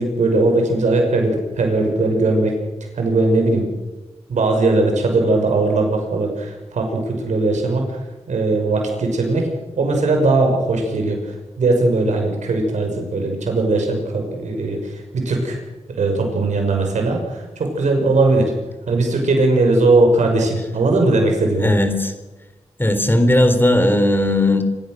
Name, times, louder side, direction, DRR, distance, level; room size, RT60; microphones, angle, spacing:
voice 1, 0.0-2.6 2.9-3.7 4.3-9.5 9.8-15.6 16.0-18.5 18.9-21.7, right 2 dB, 90° right, 3 dB, 6.0 m, -19 dB
voice 2, 21.6-22.1 22.8-24.6, left 1 dB, 20° left, 8 dB, 3.8 m, -16 dB
27.5 x 16.0 x 6.5 m, 1.1 s
cardioid pair, 55°, 12 cm